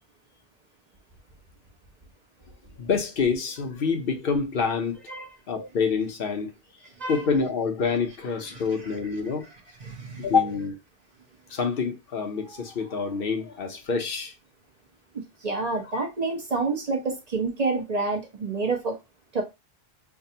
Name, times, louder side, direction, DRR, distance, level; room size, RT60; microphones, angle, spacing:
voice 1, 2.8-5.0 5.5-6.5 7.1-9.5 10.2-10.8 11.5-14.3, left 5 dB, 60° left, 1.0 m, -26 dB
voice 2, 9.8-10.3 15.4-19.0 19.3-19.4, right 3 dB, 40° right, 1.0 m, -28 dB
5.9 x 2.3 x 2.8 m
omnidirectional pair, 1.1 m